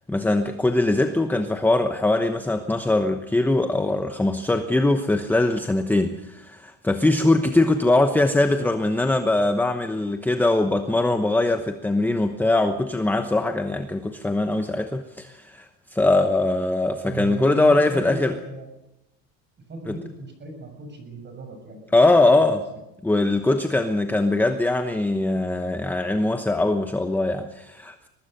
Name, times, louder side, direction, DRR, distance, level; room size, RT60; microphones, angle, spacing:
voice 1, 0.1-18.3 19.9-20.0 21.9-22.6 23.0-28.1, left 2 dB, 5° left, 7 dB, 1.0 m, -21 dB
voice 2, 17.0-18.7 19.7-21.8 22.3-22.8 24.1-24.2, right 2 dB, 25° right, 6 dB, 6.8 m, -37 dB
23.0 x 20.5 x 6.7 m, 0.91 s
cardioid pair, 140°, 39 cm